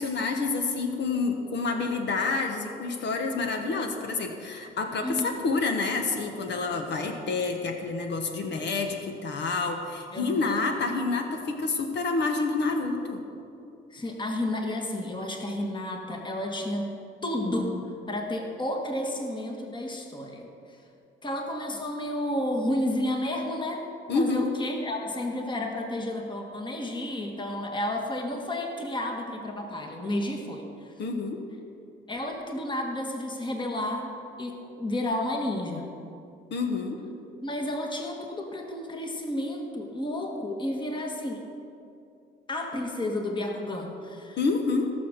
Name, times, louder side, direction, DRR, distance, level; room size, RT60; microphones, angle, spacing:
voice 1, 0.0-13.2 24.1-24.5 31.0-31.4 36.5-37.0 44.4-44.9, left 4 dB, 65° left, 4 dB, 1.2 m, -28 dB
voice 2, 5.0-5.4 10.1-10.7 13.9-16.9 17.2-20.5 21.2-23.8 24.1-30.9 32.1-35.9 37.4-41.5 42.5-44.4, left 1 dB, 25° left, 2 dB, 1.6 m, -31 dB
17.0 x 6.3 x 6.6 m, 2.6 s
cardioid pair, 90°, 20 cm